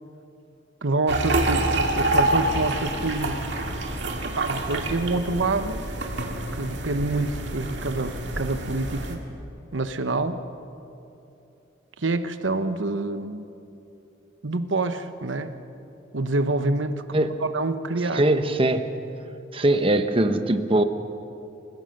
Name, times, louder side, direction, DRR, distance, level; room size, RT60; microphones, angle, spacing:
voice 1, 0.8-3.5 4.3-5.8 6.5-9.2 9.7-10.4 12.0-13.4 14.4-15.5 16.1-17.0 17.5-18.2, right 2 dB, 80° right, 10 dB, 1.0 m, -27 dB
sound 1, 1.1-9.2, right 1 dB, 65° right, 2.3 m, -27 dB
voice 2, 18.1-18.9 19.5-20.8, right 1 dB, 30° right, 8 dB, 1.0 m, -21 dB
28.0 x 16.0 x 6.6 m, 2.8 s
head